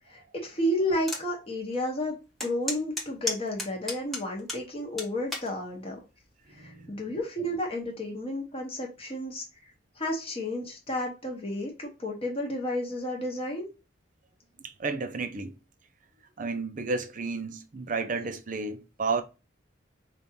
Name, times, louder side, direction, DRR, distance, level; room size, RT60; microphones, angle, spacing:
voice 1, 0.1-6.0 6.5-9.4 10.0-13.7, left 1 dB, 30° left, 1.1 m, -32 dB
sound 1, 1.1-1.2 1.7-1.8 2.4-4.6 5.0-5.5 6.2-6.5, left 2 dB, ahead, 0.9 m, -33 dB
voice 2, 6.5-6.9 14.6-15.5 16.4-19.2, right 4 dB, 40° right, 0.5 m, -32 dB
5.1 x 2.4 x 2.8 m
head